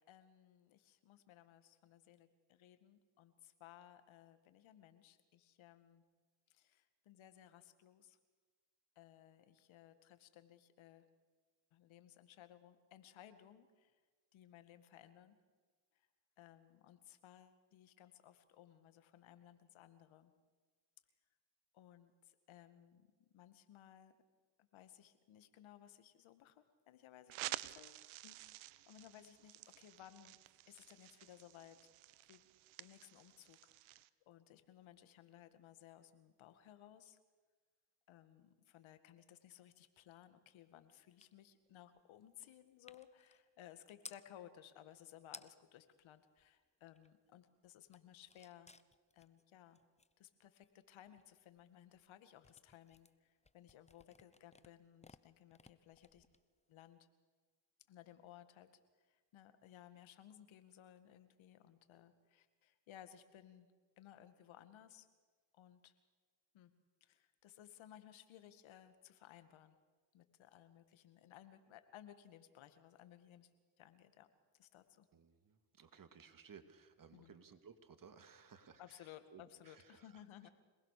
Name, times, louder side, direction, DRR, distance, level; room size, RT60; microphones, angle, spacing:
voice 1, 0.0-6.0 6.5-8.2 9.0-11.1 11.7-14.0 14.3-15.4 15.9-16.1 16.4-20.3 21.7-24.1 24.6-30.4 30.7-31.8 32.3-32.4 32.8-37.2 38.1-48.7 49.1-49.8 50.2-56.2 56.7-57.1 57.9-58.7 59.0-63.7 64.0-65.1 65.5-65.9 66.5-66.7 67.0-69.8 70.1-73.5 73.8-74.3 74.5-75.1 77.1-77.3 78.8-80.5, left 11 dB, 75° left, 10 dB, 2.2 m, -60 dB
sound 1, 27.3-34.1, right 17 dB, 85° right, 0.9 m, -50 dB
sound 2, 41.2-41.4 41.6-44.3 45.0-45.1 45.2-45.8 46.2-47.3 47.6-56.9, left 3 dB, 15° left, 1.0 m, -61 dB
voice 2, 75.1-80.5, right 6 dB, 45° right, 9 dB, 2.4 m, -60 dB
26.5 x 19.5 x 6.8 m, 1.4 s
supercardioid pair, 70°, 47 cm